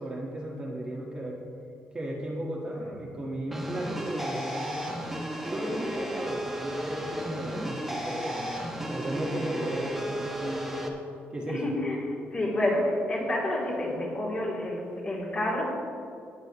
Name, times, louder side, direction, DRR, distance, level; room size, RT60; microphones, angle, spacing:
voice 1, 0.0-1.4 1.9-4.9 5.4-8.6 8.9-10.9 11.3-11.7, right 1 dB, 20° right, -3 dB, 1.7 m, -35 dB
sound 1, 3.5-10.9, equal, 5° right, 1.4 m, -34 dB
voice 2, 11.5-15.6, left 1 dB, 35° left, -5 dB, 3.2 m, -29 dB
18.0 x 9.0 x 3.1 m, 2.5 s
cardioid pair, 130°, 4 cm